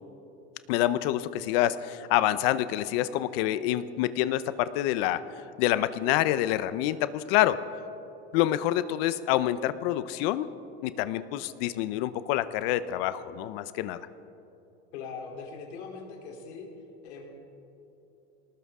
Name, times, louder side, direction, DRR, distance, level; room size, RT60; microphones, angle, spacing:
voice 1, 0.7-5.2 5.6-7.6 8.3-10.5 10.8-14.0, left 13 dB, 60° left, 14 dB, 0.8 m, -27 dB
voice 2, 14.9-16.7 17.0-17.3, left 5 dB, 75° left, 1 dB, 3.5 m, -41 dB
20.5 x 19.0 x 3.7 m, 2.9 s
supercardioid pair, 120°, 33 cm